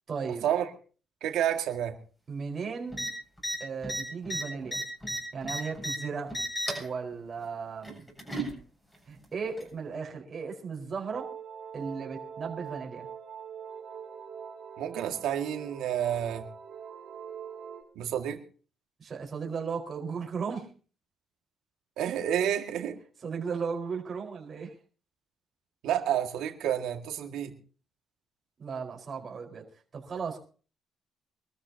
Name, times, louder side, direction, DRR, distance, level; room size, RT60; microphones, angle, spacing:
voice 1, 0.1-0.5 2.3-3.1 3.6-4.8 5.3-6.3 6.7-8.0 9.1-11.3 11.7-13.1 19.0-20.7 23.2-24.7 28.6-29.6 29.9-30.4, right 5 dB, 45° right, 0 dB, 4.7 m, -36 dB
voice 2, 1.2-2.0 14.8-16.4 18.0-18.4 22.0-23.0 25.8-27.5, right 10 dB, 85° right, 5 dB, 2.0 m, -29 dB
sound 1, 2.9-3.1 3.4-3.6 3.8-6.0 6.3-6.9 7.8-8.5 9.6-9.7, right 1 dB, 15° left, 7.6 m, -33 dB
sound 2, 11.1-17.8, right 7 dB, 65° right, 3.4 m, -43 dB
24.5 x 13.5 x 2.9 m, 0.40 s
cardioid pair, 90°, 0 cm